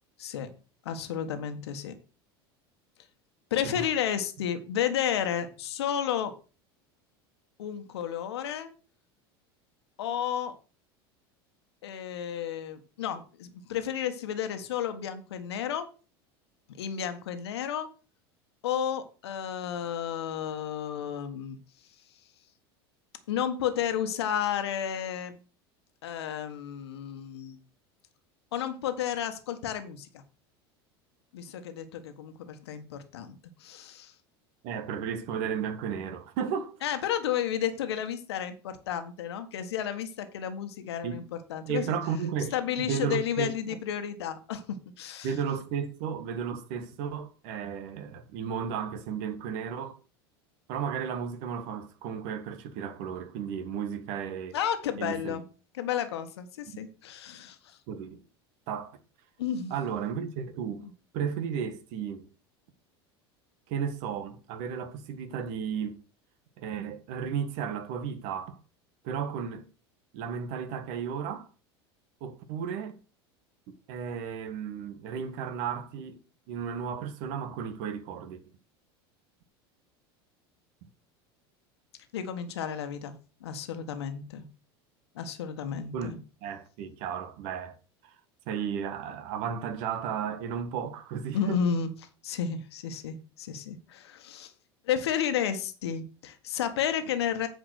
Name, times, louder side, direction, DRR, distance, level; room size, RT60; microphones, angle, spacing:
voice 1, 0.8-1.9 3.5-6.3 7.6-8.7 10.0-10.5 11.8-15.9 16.8-17.9 18.6-21.6 23.3-25.4 26.0-27.6 28.5-30.2 31.3-34.1 36.8-42.0 42.5-45.3 54.5-55.4 55.7-57.8 59.4-59.7 60.8-60.9 82.1-83.2 83.4-84.5 85.1-86.2 91.3-91.9 92.2-94.5 94.9-97.5, left 9 dB, 80° left, 1.4 m, -32 dB
voice 2, 34.6-36.7 41.0-41.2 41.7-43.8 45.2-50.0 50.7-54.6 55.0-55.4 56.7-56.8 57.9-58.2 58.7-59.0 59.7-60.9 61.1-62.3 63.7-66.0 66.6-68.6 69.0-69.6 70.1-71.5 72.2-73.0 73.7-76.2 76.5-78.4 85.9-87.8 88.0-88.1 88.5-91.6, right 7 dB, 65° right, 1.7 m, -34 dB
8.4 x 5.2 x 6.4 m
hypercardioid pair, 95°, 13 cm